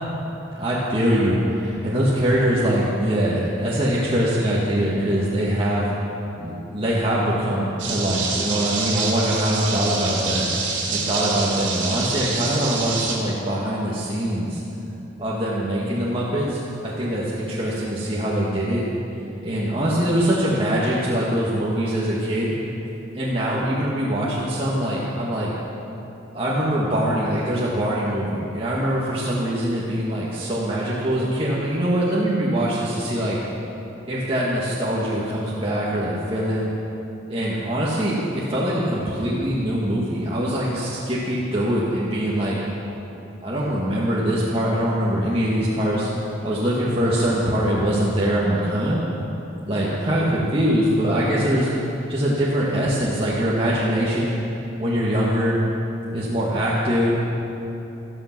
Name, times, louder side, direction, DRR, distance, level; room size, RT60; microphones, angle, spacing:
voice 1, 0.5-5.9 6.4-10.5 10.9-14.6 15.2-18.8 19.4-22.5 23.1-25.5 26.3-33.4 34.1-36.7 37.3-42.5 43.4-46.1 46.4-49.0 49.7-54.3 54.8-55.6 56.1-57.1, equal, 30° right, -7 dB, 1.8 m, -23 dB
sound 1, 7.8-13.2, right 4 dB, 75° right, 2.8 m, -26 dB
14.0 x 13.5 x 6.1 m, 3.0 s
head